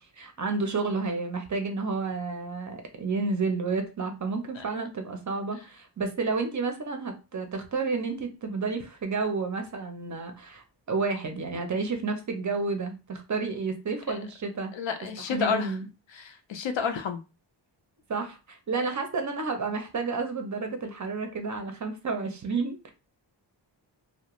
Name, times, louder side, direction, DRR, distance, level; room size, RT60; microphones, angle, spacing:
voice 1, 0.0-14.7 15.3-15.8 18.1-22.9, right 4 dB, 40° right, 0.5 m, -31 dB
voice 2, 14.7-15.8 16.1-17.2, left 6 dB, 75° left, 0.5 m, -30 dB
2.3 x 2.0 x 2.9 m
wide cardioid pair, 160°, 46 cm